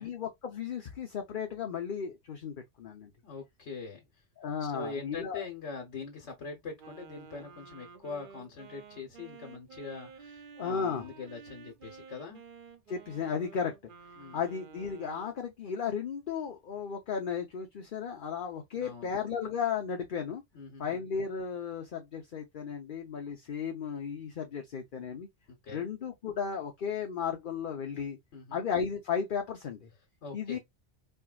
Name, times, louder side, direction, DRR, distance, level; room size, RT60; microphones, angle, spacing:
voice 1, 0.0-3.1 4.4-5.4 10.6-11.0 12.9-13.7 14.3-20.4 20.8-25.3 25.7-28.2 28.5-29.9 30.3-30.6, left 6 dB, 50° left, 0.8 m, -34 dB
voice 2, 3.2-4.2 4.7-12.4 14.2-14.4 18.7-19.1 20.5-21.0 25.6-25.9 28.3-28.6 30.2-30.6, left 4 dB, 75° left, 1.3 m, -43 dB
Wind instrument woodwind instrument, 6.8-15.4, right 5 dB, 55° right, 0.7 m, -51 dB
4.6 x 2.9 x 2.3 m
omnidirectional pair, 1.2 m